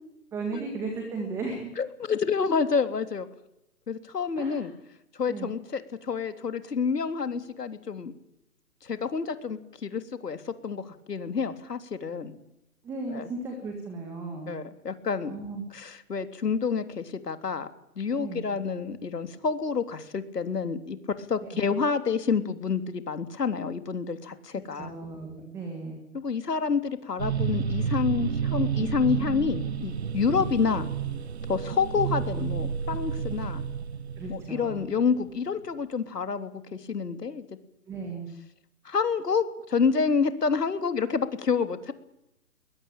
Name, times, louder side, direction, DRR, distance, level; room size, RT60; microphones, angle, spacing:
voice 1, 0.3-1.7 4.4-4.7 5.3-5.5 12.8-14.6 15.2-15.6 18.2-18.4 21.4-21.6 24.5-26.0 30.3-30.5 34.2-34.9 37.9-38.3, right 3 dB, 5° right, 3 dB, 1.9 m, -36 dB
voice 2, 1.8-3.3 3.9-4.7 5.2-8.1 8.8-12.3 13.1-13.3 14.5-15.3 15.7-17.7 18.0-21.0 21.3-24.9 26.1-30.9 31.5-33.7 34.3-37.4 38.8-41.9, left 5 dB, 80° left, 10 dB, 3.4 m, -28 dB
sound 1, 27.2-35.3, right 7 dB, 45° right, 1.1 m, -30 dB
21.5 x 21.0 x 9.0 m, 0.84 s
hypercardioid pair, 165°, 47 cm